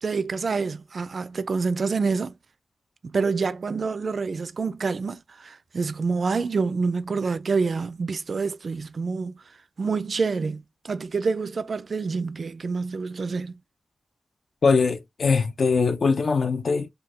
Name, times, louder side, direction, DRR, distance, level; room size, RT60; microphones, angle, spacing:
voice 1, 0.0-2.3 3.0-9.4 9.8-13.5, right 4 dB, 55° right, 0.3 m, -27 dB
voice 2, 14.6-16.9, left 4 dB, 60° left, 0.4 m, -22 dB
4.2 x 2.2 x 2.4 m
wide cardioid pair, 120°, 0 cm